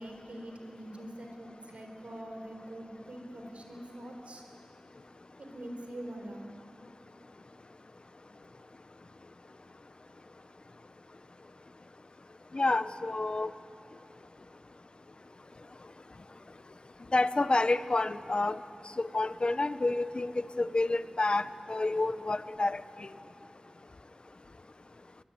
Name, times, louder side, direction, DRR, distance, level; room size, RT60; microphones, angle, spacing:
voice 1, 0.0-4.4 5.4-6.4, right 1 dB, 85° right, 3 dB, 4.0 m, -44 dB
voice 2, 12.5-13.5 17.1-18.6 19.0-22.8, left 2 dB, 55° left, 13 dB, 0.9 m, -29 dB
23.5 x 21.0 x 9.7 m, 2.9 s
wide cardioid pair, 45°, 2 cm